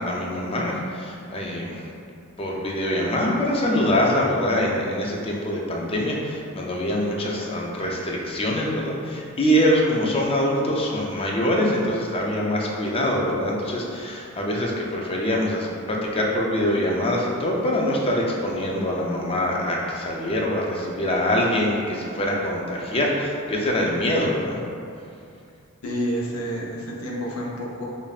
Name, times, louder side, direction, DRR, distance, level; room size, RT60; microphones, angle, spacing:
voice 1, 0.0-1.9 2.4-24.6, left 1 dB, 25° left, -2 dB, 0.4 m, -24 dB
voice 2, 25.8-27.9, equal, 85° left, -3 dB, 0.7 m, -29 dB
5.0 x 2.6 x 2.4 m, 2.4 s
head